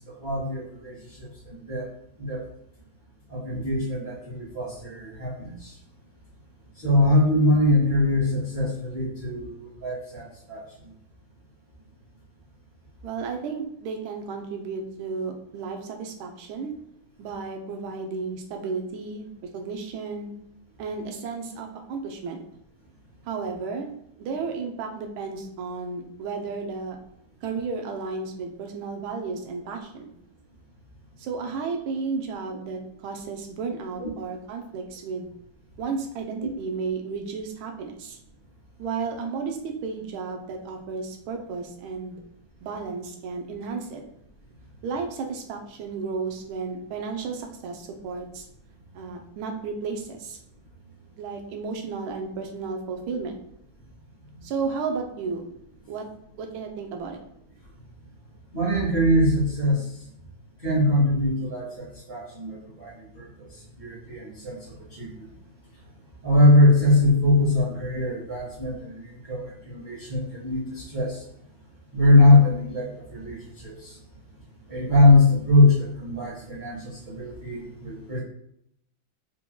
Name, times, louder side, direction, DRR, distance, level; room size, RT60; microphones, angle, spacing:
voice 1, 0.2-1.9 2.2-2.4 3.3-5.7 6.8-10.6 34.0-34.1 36.4-36.5 58.5-59.8 60.6-63.3 63.8-65.1 66.2-71.2 71.9-73.9 74.7-78.2, left 1 dB, 25° right, -11 dB, 1.7 m, -22 dB
voice 2, 13.0-16.7 17.2-20.3 20.8-22.4 23.3-23.9 24.2-27.0 27.4-30.1 31.2-35.3 35.8-38.2 38.8-42.2 42.6-44.0 44.8-48.5 48.9-50.4 51.2-53.3 54.4-55.4 55.9-56.1 56.4-57.2, right 4 dB, 90° right, 3 dB, 1.5 m, -33 dB
4.5 x 3.8 x 2.2 m, 0.74 s
omnidirectional pair, 2.2 m